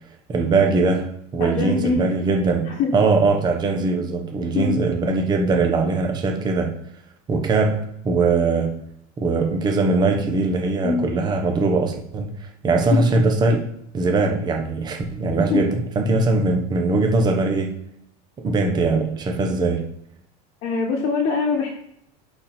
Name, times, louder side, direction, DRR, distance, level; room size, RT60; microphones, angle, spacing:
voice 1, 0.3-2.7 2.9-6.7 7.3-8.8 9.2-13.7 13.9-17.8 18.4-19.8, right 3 dB, 20° right, 2 dB, 1.0 m, -21 dB
voice 2, 1.4-2.1 2.7-2.9 4.5-4.8 10.8-11.1 12.9-13.0 15.5-15.6 20.6-21.7, left 4 dB, 35° left, -2 dB, 1.4 m, -23 dB
10.5 x 4.4 x 4.4 m, 0.74 s
cardioid pair, 170°, 21 cm